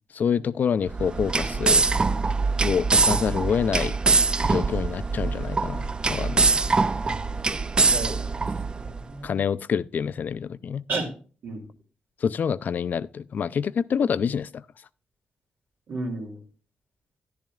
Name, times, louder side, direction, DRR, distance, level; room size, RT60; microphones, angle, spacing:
voice 1, 0.1-1.9 2.6-3.9 4.4-6.5 9.2-10.8 12.2-14.6, left 7 dB, 60° left, 0.4 m, -27 dB
Compressed air fluid dispenser, 0.9-9.0, right 4 dB, 25° right, 0.3 m, -23 dB
voice 2, 7.9-8.3 8.8-9.4 10.9-11.1 11.4-11.7 15.9-16.4, right 3 dB, 70° right, 2.8 m, -32 dB
11.5 x 10.5 x 2.3 m
wide cardioid pair, 120°, 3 cm